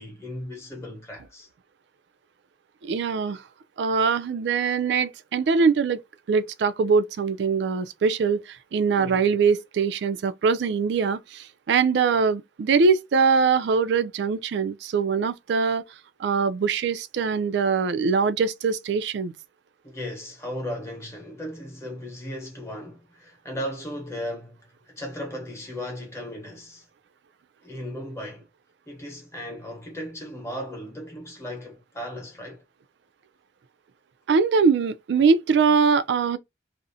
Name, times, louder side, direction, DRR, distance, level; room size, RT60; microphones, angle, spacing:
voice 1, 0.0-1.5 8.9-9.3 19.8-26.8 27.6-28.5 28.9-32.6, equal, 15° left, 0.9 m, -36 dB
voice 2, 2.8-3.4 3.8-6.0 6.3-15.8 16.2-19.3 34.3-36.4, right 5 dB, 70° right, 0.3 m, -22 dB
2.5 x 2.0 x 2.6 m
head